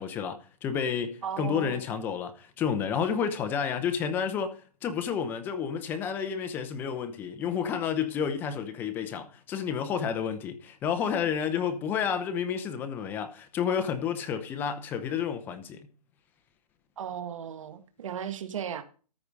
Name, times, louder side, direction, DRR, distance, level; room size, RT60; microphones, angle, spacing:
voice 1, 0.0-15.8, left 7 dB, 10° left, 0.8 m, -30 dB
voice 2, 1.2-1.9 17.0-18.8, right 8 dB, 55° right, 1.9 m, -36 dB
13.5 x 4.9 x 5.3 m
hypercardioid pair, 165°, 20 cm